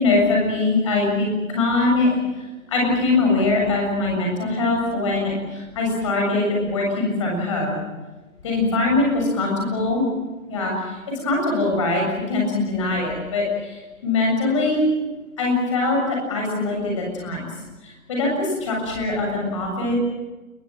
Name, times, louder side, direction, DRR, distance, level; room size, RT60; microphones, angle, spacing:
voice 1, 0.0-7.8 8.4-10.0 10.5-14.9 15.4-17.5 17.8-20.0, left 2 dB, 20° left, 0 dB, 7.3 m, -22 dB
29.5 x 21.5 x 7.7 m, 1.2 s
figure-of-eight pair, 165°, 43 cm